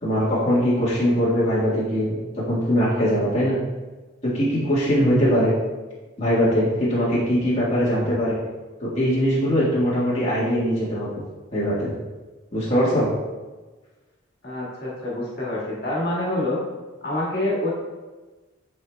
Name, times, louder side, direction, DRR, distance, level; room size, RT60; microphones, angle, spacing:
voice 1, 0.0-3.6 4.2-5.5 6.2-8.4 8.8-11.2 11.5-11.9 12.5-13.1, equal, 35° left, -9 dB, 1.6 m, -21 dB
voice 2, 14.4-16.6 17.0-17.7, left 1 dB, 55° left, -6 dB, 1.8 m, -26 dB
9.5 x 4.6 x 2.3 m, 1.2 s
head